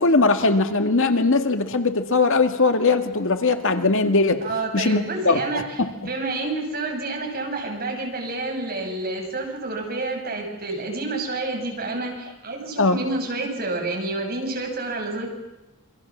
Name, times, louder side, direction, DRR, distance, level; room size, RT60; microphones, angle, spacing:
voice 1, 0.0-4.4 4.7-5.4 5.8-5.9 12.8-13.0, left 3 dB, 65° left, 7 dB, 2.0 m, -20 dB
voice 2, 4.4-5.6 6.0-15.3, right 2 dB, 45° right, 1 dB, 7.0 m, -29 dB
28.0 x 24.5 x 7.4 m, 1.0 s
head